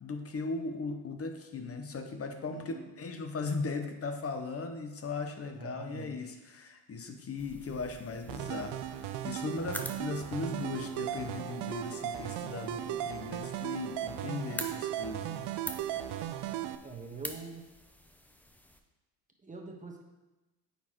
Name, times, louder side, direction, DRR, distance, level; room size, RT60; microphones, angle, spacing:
voice 1, 0.0-15.5 16.2-16.3, left 4 dB, 30° left, 6 dB, 0.8 m, -38 dB
voice 2, 2.5-2.9 5.4-6.4 16.8-17.7 19.4-20.0, right 4 dB, 15° right, 1 dB, 1.2 m, -45 dB
sound 1, 7.4-18.8, left 1 dB, 5° left, 0.5 m, -47 dB
sound 2, 8.3-16.7, right 11 dB, 55° right, 0.5 m, -37 dB
9.0 x 4.4 x 3.0 m, 1.1 s
hypercardioid pair, 75°, 49 cm